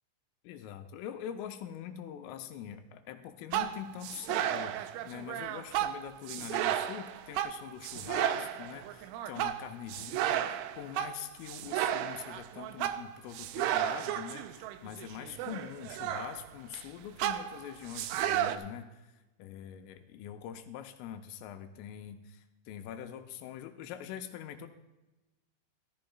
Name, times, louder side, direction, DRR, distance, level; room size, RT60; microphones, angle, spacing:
voice 1, 0.4-19.1 19.4-24.7, left 10 dB, 85° left, 6 dB, 3.2 m, -44 dB
sound 1, 3.5-16.8 17.2-18.6, right 12 dB, 80° right, 3.0 m, -33 dB
14.5 x 14.5 x 2.3 m, 1.0 s
omnidirectional pair, 5.8 m